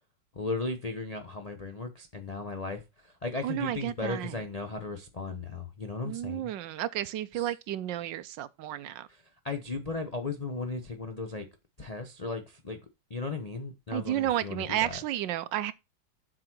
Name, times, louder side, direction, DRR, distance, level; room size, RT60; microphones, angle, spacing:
voice 1, 0.3-6.5 7.3-7.5 9.1-11.5 11.8-12.8 13.1-15.0, left 3 dB, 75° left, 0.3 m, -36 dB
voice 2, 3.4-4.4 6.0-9.1 13.9-15.7, right 12 dB, 70° right, 1.2 m, -32 dB
7.7 x 4.8 x 6.0 m
omnidirectional pair, 2.2 m